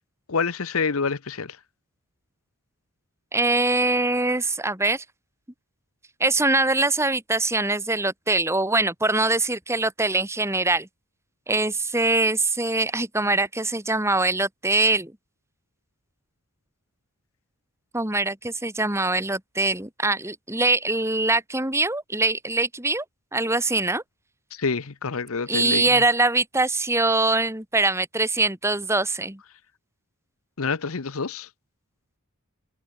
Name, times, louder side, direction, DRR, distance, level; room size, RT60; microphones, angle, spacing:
voice 1, 0.3-1.6 24.5-26.0 30.6-31.5, left 5 dB, 75° left, 0.9 m, -27 dB
voice 2, 3.3-5.0 6.2-10.9 11.5-15.1 17.9-23.0 23.3-24.0 25.5-29.4, right 2 dB, 10° right, 2.6 m, -23 dB
head